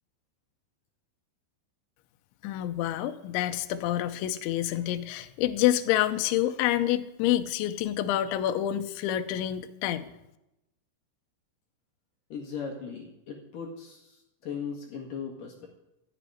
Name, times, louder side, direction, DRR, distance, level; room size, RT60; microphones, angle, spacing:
voice 1, 2.4-10.1, left 13 dB, 80° left, 9 dB, 3.0 m, -27 dB
voice 2, 12.3-14.2 14.4-15.7, left 6 dB, 55° left, 0 dB, 2.9 m, -38 dB
14.5 x 7.2 x 9.2 m, 0.91 s
omnidirectional pair, 5.6 m